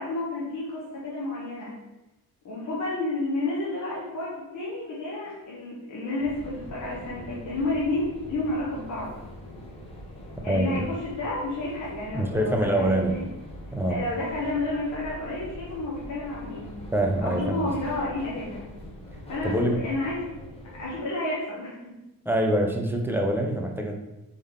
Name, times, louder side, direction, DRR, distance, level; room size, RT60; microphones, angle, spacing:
voice 1, 0.0-1.8 2.4-9.1 10.4-13.3 13.9-16.7 17.2-18.6 19.3-20.2 20.8-21.8, left 2 dB, 55° left, -7 dB, 1.0 m, -31 dB
sound 1, 6.2-21.0, equal, 15° left, 0.8 m, -43 dB
voice 2, 10.5-10.8 12.1-13.2 13.7-14.0 16.9-17.7 19.4-19.9 22.3-24.0, right 1 dB, 5° right, 1 dB, 0.3 m, -25 dB
4.1 x 3.6 x 3.6 m, 0.96 s
wide cardioid pair, 175°, 36 cm